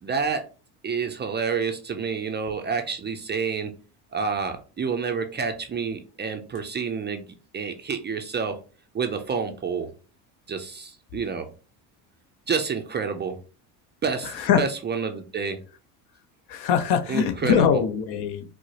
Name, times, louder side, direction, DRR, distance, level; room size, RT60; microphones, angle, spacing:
voice 1, 0.0-0.4 0.8-3.7 4.1-7.2 7.5-8.5 8.9-9.9 10.5-11.5 12.5-13.4 14.0-15.6 17.1-17.8, right 5 dB, 25° right, 5 dB, 0.4 m, -28 dB
voice 2, 16.5-18.5, left 8 dB, 60° left, 9 dB, 0.6 m, -22 dB
4.6 x 2.0 x 2.8 m, 0.36 s
supercardioid pair, 90°, 46 cm